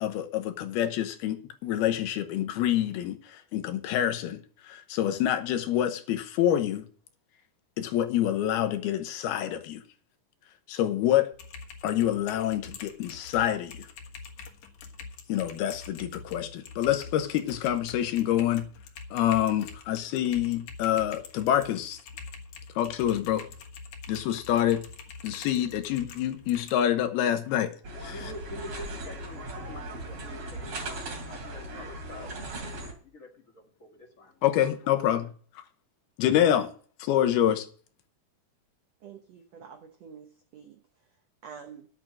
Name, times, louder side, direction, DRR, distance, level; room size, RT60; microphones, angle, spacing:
voice 1, 0.0-4.4 4.7-6.8 7.8-9.8 10.7-11.3 11.8-13.9 15.3-18.7 19.1-22.0 22.8-23.5 24.1-24.8 25.2-27.7 28.0-28.1 34.4-35.3 36.2-36.7 37.0-37.7, left 11 dB, 85° left, 3.0 m, -26 dB
Typing, 11.3-26.9, left 5 dB, 60° left, 2.6 m, -45 dB
sound 1, 27.8-32.9, right 1 dB, 45° right, 3.4 m, -38 dB
voice 2, 28.0-34.4 35.0-35.2, left 1 dB, 35° left, 1.4 m, -47 dB
voice 3, 39.0-40.8 41.4-41.9, right 7 dB, 75° right, 1.5 m, -47 dB
10.5 x 8.6 x 6.1 m
omnidirectional pair, 4.4 m